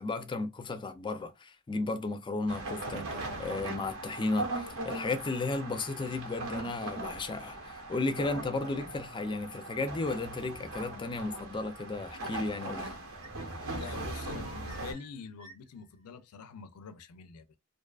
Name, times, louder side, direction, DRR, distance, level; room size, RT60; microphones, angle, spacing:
voice 1, 0.0-13.0, left 3 dB, 20° left, 0.3 m, -34 dB
sound 1, 2.5-14.9, right 2 dB, 65° right, 0.9 m, -40 dB
sound 2, 2.8-6.8 7.2-7.9 9.8-10.3, right 5 dB, 85° right, 0.4 m, -51 dB
sound 3, 11.9-12.6 13.1-15.9, equal, 30° right, 0.8 m, -51 dB
voice 2, 13.7-17.6, left 5 dB, 80° left, 0.4 m, -46 dB
2.6 x 2.3 x 2.3 m
head